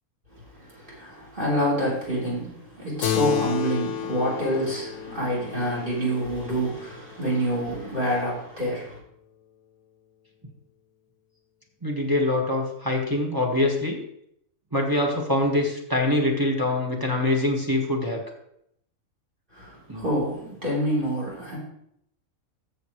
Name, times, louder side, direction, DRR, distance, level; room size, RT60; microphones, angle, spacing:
voice 1, 0.3-9.0 19.5-21.6, equal, 35° right, -5 dB, 3.9 m, -27 dB
Keyboard (musical), 3.0-7.9, left 9 dB, 70° left, 0.9 m, -32 dB
voice 2, 11.8-14.0 14.7-18.2 19.9-20.0, left 1 dB, 15° right, 0 dB, 1.5 m, -24 dB
13.5 x 6.9 x 3.2 m, 0.74 s
omnidirectional pair, 1.5 m